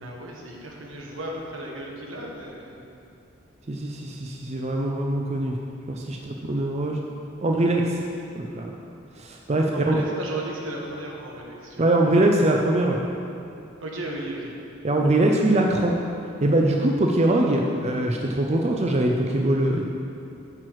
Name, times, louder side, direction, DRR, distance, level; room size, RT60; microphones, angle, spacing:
voice 1, 0.0-2.7 9.7-11.9 13.8-14.5, right 1 dB, 80° right, -1 dB, 1.4 m, -35 dB
voice 2, 3.7-5.6 5.9-7.0 7.4-8.0 8.3-8.7 9.2-10.1 11.8-13.0 14.8-16.0 16.4-19.9, right 1 dB, 35° right, 1 dB, 0.5 m, -22 dB
9.0 x 5.9 x 4.7 m, 2.6 s
head